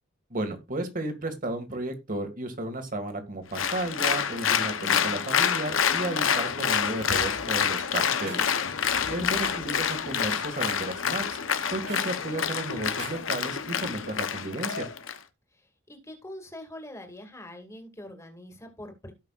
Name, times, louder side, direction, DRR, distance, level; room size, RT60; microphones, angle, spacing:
voice 1, 0.3-8.5 9.1-11.4 11.7-14.9, right 1 dB, 45° right, 2.0 m, -33 dB
Applause, 3.5-15.2, left 7 dB, 85° left, 0.9 m, -27 dB
Rattle, 8.2-8.4 9.4-9.6 10.6-10.9 11.8-12.1 12.8-13.2, right 5 dB, 85° right, 6.2 m, -41 dB
voice 2, 15.5-19.1, left 1 dB, 15° left, 2.2 m, -44 dB
17.0 x 5.8 x 2.5 m
head